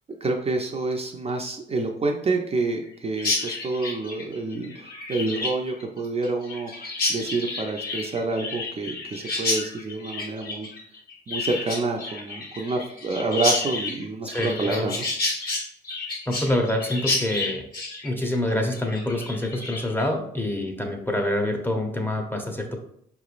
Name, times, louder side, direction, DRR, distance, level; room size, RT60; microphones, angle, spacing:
voice 1, 0.2-10.7 11.3-15.1, right 3 dB, 30° right, 1 dB, 0.5 m, -28 dB
Chirp tweet, 3.2-20.0, left 3 dB, 50° left, 1.4 m, -30 dB
voice 2, 14.2-14.9 16.3-17.6 18.0-22.8, left 1 dB, 10° left, 2 dB, 0.7 m, -26 dB
4.6 x 3.0 x 2.5 m, 0.69 s
cardioid pair, 90°, 20 cm